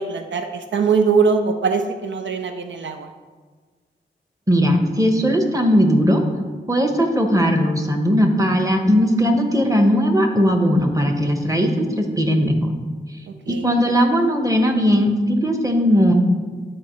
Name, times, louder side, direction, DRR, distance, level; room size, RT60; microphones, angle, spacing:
voice 1, 0.0-3.1 13.5-13.6, right 5 dB, 80° right, 6 dB, 0.5 m, -21 dB
voice 2, 4.5-6.2 6.7-12.7 13.5-16.1, equal, 15° right, 4 dB, 1.1 m, -18 dB
11.5 x 4.4 x 3.1 m, 1.4 s
cardioid pair, 55°, 19 cm